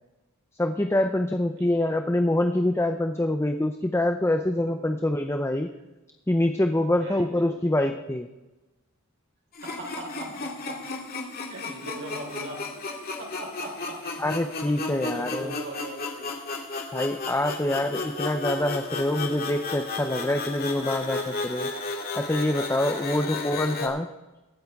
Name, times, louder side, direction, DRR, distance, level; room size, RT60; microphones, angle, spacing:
voice 1, 0.6-5.7 6.3-8.3 14.2-15.5 16.9-21.7 22.1-24.1, left 1 dB, 10° left, 6 dB, 0.6 m, -25 dB
voice 2, 6.9-7.5 9.6-10.8 11.5-12.7 13.2-14.0 14.9-16.3 17.7-17.8 23.0-23.3, right 1 dB, 60° right, -1 dB, 4.5 m, -39 dB
sound 1, 9.5-23.9, left 3 dB, 45° left, 2.1 m, -34 dB
23.0 x 8.6 x 3.6 m, 1.1 s
head